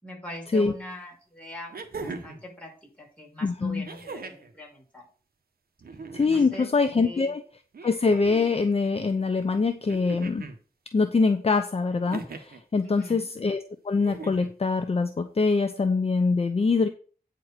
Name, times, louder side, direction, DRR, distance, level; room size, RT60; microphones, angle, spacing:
voice 1, 0.0-2.7 3.0-5.0 6.3-6.7 7.0-7.3 12.8-13.3, left 1 dB, 10° left, -3 dB, 5.6 m, -42 dB
sound 1, 0.6-0.7 1.7-2.4 3.8-4.5 5.8-6.5 7.7-8.5 9.9-10.6 12.1-12.6 13.9-14.5 15.8-15.9, right 4 dB, 70° right, 1.4 m, -39 dB
voice 2, 3.4-3.9 6.1-7.4 7.8-10.5 10.9-13.6 13.8-16.9, left 4 dB, 40° left, 8 dB, 0.7 m, -24 dB
9.3 x 4.4 x 6.7 m, 0.40 s
wide cardioid pair, 90°, 16 cm